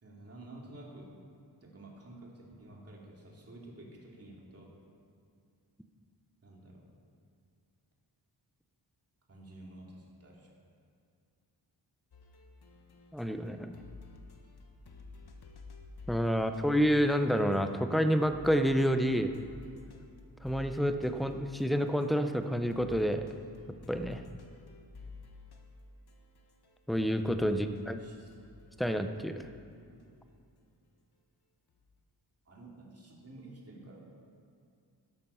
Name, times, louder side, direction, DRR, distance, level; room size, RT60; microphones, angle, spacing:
voice 1, 0.0-1.1 1.6-4.7 6.4-6.9 9.3-10.5 27.5-28.3 32.4-34.2, right 1 dB, 35° right, -3 dB, 2.6 m, -51 dB
sound 1, 12.1-18.0 18.2-26.8 27.2-30.3 31.7-32.0, left 3 dB, 65° left, 1.4 m, -53 dB
voice 2, 13.1-13.8 16.1-19.3 20.4-23.3 23.9-24.2 26.9-28.0 28.8-29.3, equal, ahead, 8 dB, 0.5 m, -28 dB
13.0 x 12.0 x 5.6 m, 2.4 s
wide cardioid pair, 155°, 41 cm